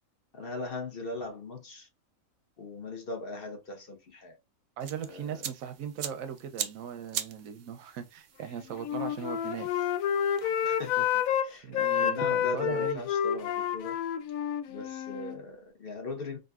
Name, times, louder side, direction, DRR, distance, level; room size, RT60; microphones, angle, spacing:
voice 1, 0.3-1.9 2.6-4.4 5.1-5.5 10.6-11.7 12.0-13.9 14.7-16.4, left 2 dB, 50° left, 1.0 m, -39 dB
sound 1, 4.8-11.3, right 9 dB, 65° right, 0.6 m, -42 dB
voice 2, 4.8-9.9 11.6-13.0, right 8 dB, 85° right, 1.0 m, -39 dB
Wind instrument woodwind instrument, 8.7-11.5 11.7-15.4, left 9 dB, 90° left, 1.0 m, -29 dB
4.9 x 2.5 x 2.4 m
omnidirectional pair, 1.4 m